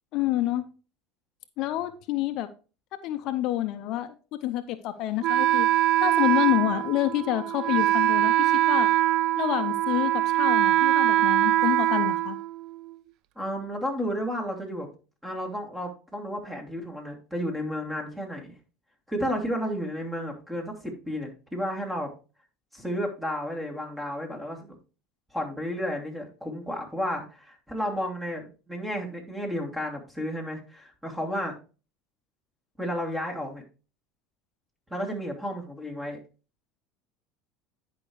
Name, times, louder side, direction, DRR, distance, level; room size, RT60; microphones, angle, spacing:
voice 1, 0.1-0.6 1.6-2.5 3.0-5.7 6.0-8.9 9.4-12.4, left 14 dB, 60° left, 11 dB, 0.6 m, -28 dB
Wind instrument woodwind instrument, 5.2-13.0, right 13 dB, 60° right, 0.4 m, -23 dB
voice 2, 13.4-14.9 15.2-18.5 19.1-22.1 22.7-24.8 25.3-31.5 32.8-33.6 34.9-36.2, equal, 10° right, 1 dB, 2.8 m, -32 dB
10.5 x 5.3 x 3.1 m, 0.34 s
hypercardioid pair, 80°, 0 cm